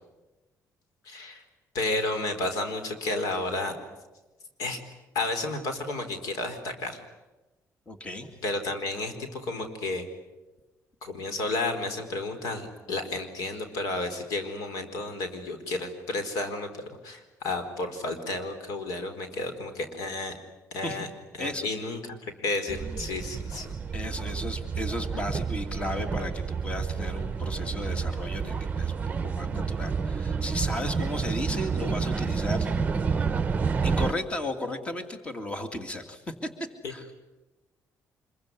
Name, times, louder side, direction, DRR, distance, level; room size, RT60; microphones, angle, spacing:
voice 1, 1.0-1.4 1.7-3.8 4.6-4.8 5.1-7.0 8.4-10.1 11.0-16.7 17.0-20.3 20.7-21.1 21.4-23.8 36.8-36.9, left 2 dB, 90° left, 8 dB, 4.4 m, -32 dB
voice 2, 7.9-8.3 20.8-21.0 21.4-21.7 23.9-32.7 33.0-33.1 33.8-36.5 36.9-37.1, left 1 dB, 20° left, 7 dB, 2.3 m, -35 dB
sound 1, 22.7-34.1, right 5 dB, 25° right, 0.9 m, -29 dB
26.0 x 23.0 x 9.7 m, 1.1 s
cardioid pair, 145°, 6 cm